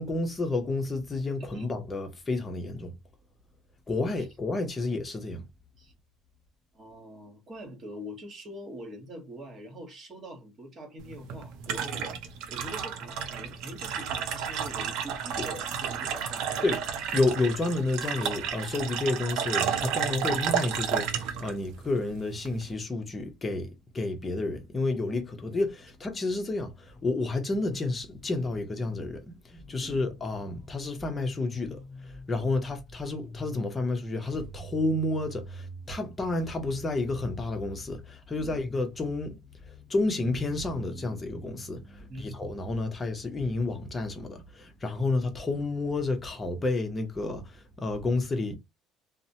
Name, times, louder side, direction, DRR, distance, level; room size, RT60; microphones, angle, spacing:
voice 1, 0.0-2.9 3.9-5.4 16.6-16.8 17.1-48.5, left 2 dB, 20° left, 0.7 m, -30 dB
voice 2, 6.7-12.2 12.5-16.7 29.8-30.0 32.4-32.6 38.4-38.6 42.0-42.3, equal, 35° right, 1.2 m, -44 dB
sound 1, 11.0-22.7, right 8 dB, 70° right, 0.5 m, -32 dB
2.8 x 2.1 x 2.7 m
cardioid pair, 125°, 0 cm